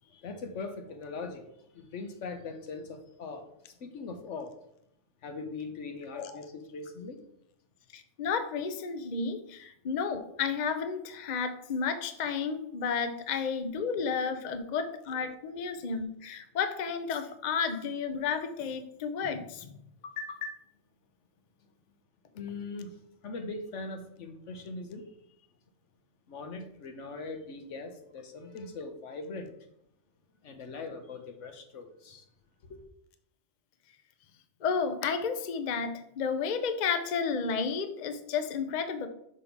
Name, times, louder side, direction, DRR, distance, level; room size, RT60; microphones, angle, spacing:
voice 1, 0.0-4.5 5.2-7.2 14.5-14.7 22.4-25.2 26.3-29.5 30.4-32.3 32.6-32.8, left 3 dB, 85° left, 1.2 m, -41 dB
voice 2, 7.9-19.7 20.0-20.6 34.6-39.1, left 5 dB, 45° left, 0.7 m, -32 dB
6.2 x 3.6 x 5.8 m
omnidirectional pair, 1.2 m